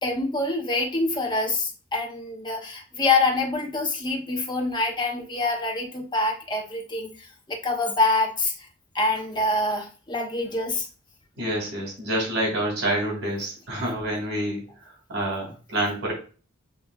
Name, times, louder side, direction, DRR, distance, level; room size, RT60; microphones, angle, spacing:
voice 1, 0.0-8.7 8.9-10.9, left 2 dB, 20° left, 1 dB, 0.9 m, -26 dB
voice 2, 11.4-16.1, right 1 dB, 75° right, -2 dB, 2.5 m, -28 dB
7.7 x 2.6 x 2.3 m, 0.36 s
head